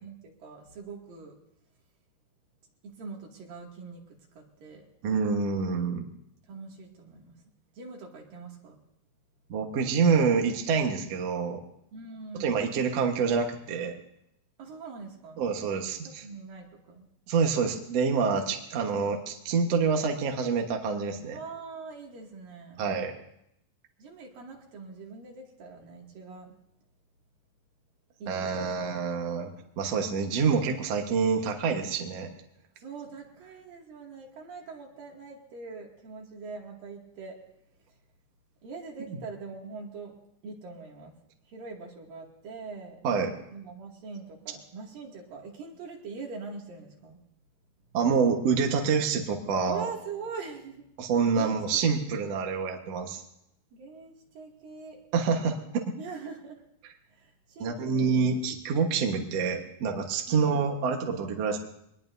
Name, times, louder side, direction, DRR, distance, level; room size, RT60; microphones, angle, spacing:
voice 1, 0.0-1.4 2.8-4.8 6.5-7.4 7.8-8.8 11.9-12.6 14.6-15.5 16.0-17.1 21.3-22.8 24.0-26.5 28.2-28.8 32.8-37.4 38.6-40.2 40.4-41.1 41.5-43.0 43.5-47.2 49.7-50.9 51.3-52.0 53.7-55.0 56.0-56.6 57.1-58.5 60.3-60.5, right 4 dB, 75° right, -1 dB, 4.1 m, -43 dB
voice 2, 5.0-6.0 9.5-11.6 12.3-14.0 15.4-16.2 17.3-21.4 22.8-23.1 28.3-29.5 29.8-32.3 43.0-43.3 47.9-49.9 51.0-53.2 55.1-55.9 57.6-61.6, right 5 dB, 55° right, 2 dB, 2.1 m, -27 dB
23.5 x 20.0 x 2.7 m, 0.77 s
omnidirectional pair, 4.1 m